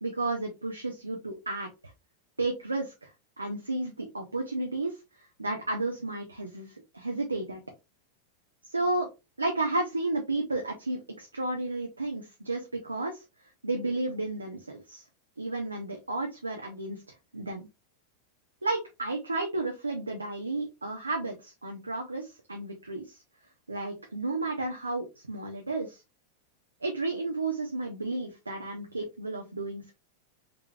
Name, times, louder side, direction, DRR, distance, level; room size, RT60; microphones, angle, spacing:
voice 1, 0.0-1.7 2.4-5.0 5.4-7.6 8.7-9.1 9.4-13.2 13.6-15.0 15.4-17.0 17.3-17.7 18.6-23.2 23.7-26.0 26.8-29.9, right 2 dB, 80° right, 3 dB, 0.6 m, -32 dB
3.7 x 3.4 x 2.3 m, 0.24 s
figure-of-eight pair, 90°, 0 cm